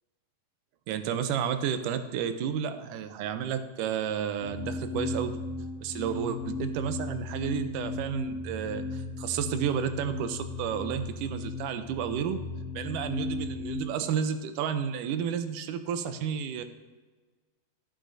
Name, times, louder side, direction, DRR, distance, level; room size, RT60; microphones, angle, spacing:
voice 1, 0.9-5.4 5.8-12.4 12.8-16.6, right 8 dB, 80° right, 10 dB, 2.0 m, -31 dB
sound 1, 4.4-13.8, left 3 dB, 65° left, 2.5 m, -36 dB
13.0 x 9.7 x 2.6 m, 1.3 s
omnidirectional pair, 4.1 m